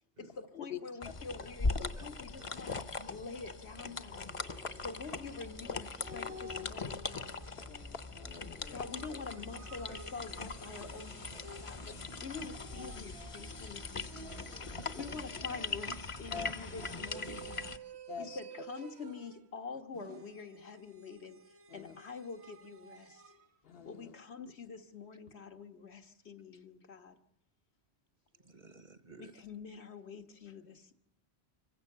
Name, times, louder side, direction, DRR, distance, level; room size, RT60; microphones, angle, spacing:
voice 1, 0.2-2.8 3.1-4.3 4.8-7.4 8.7-14.5 15.0-17.8 18.2-23.2 23.9-27.2 29.2-30.9, left 4 dB, 80° left, 1.8 m, -46 dB
sound 1, 1.0-17.8, left 3 dB, 30° left, 0.8 m, -41 dB
sound 2, 4.1-17.5, left 1 dB, ahead, 0.6 m, -53 dB
sound 3, 6.0-7.7 8.9-12.0 12.5-14.8 15.3-16.0 16.7-19.5 19.9-23.5, right 2 dB, 80° right, 1.3 m, -52 dB
voice 2, 7.6-8.8 10.8-10.9 11.8-11.9 16.3-16.5 18.1-18.4 21.7-22.0 23.6-24.1, left 6 dB, 65° left, 1.1 m, -45 dB
voice 3, 14.5-15.1 28.4-29.4, right 5 dB, 45° right, 1.1 m, -55 dB
26.0 x 16.0 x 6.7 m
omnidirectional pair, 1.1 m